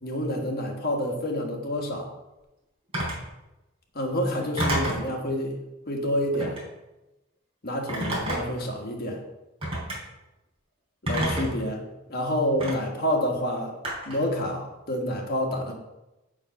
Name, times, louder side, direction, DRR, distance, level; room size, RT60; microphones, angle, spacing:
voice 1, 0.0-2.1 4.0-5.6 5.9-6.6 7.6-9.2 11.0-11.8 12.1-13.7 14.1-15.7, equal, 50° left, 1 dB, 1.7 m, -28 dB
Telephone, 2.9-3.3 4.6-5.1 6.3-6.7 7.9-8.6 9.6-10.0 11.1-11.6 12.6-12.7 13.8-14.3, right 1 dB, 30° right, 3.2 m, -28 dB
7.2 x 6.4 x 5.5 m, 0.99 s
head